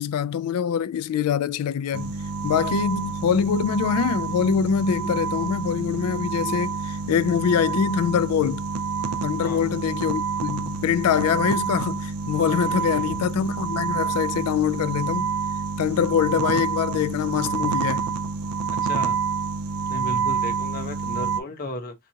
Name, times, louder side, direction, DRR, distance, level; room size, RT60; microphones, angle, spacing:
voice 1, 0.0-2.2 2.4-8.6 9.2-15.3 15.8-18.1, left 7 dB, 90° left, 0.3 m, -24 dB
sound 1, 1.9-21.4, right 5 dB, 85° right, 0.4 m, -28 dB
voice 2, 9.4-9.8 12.7-13.2 18.8-19.2 19.9-21.9, left 2 dB, 40° left, 0.7 m, -34 dB
3.9 x 2.3 x 2.7 m
head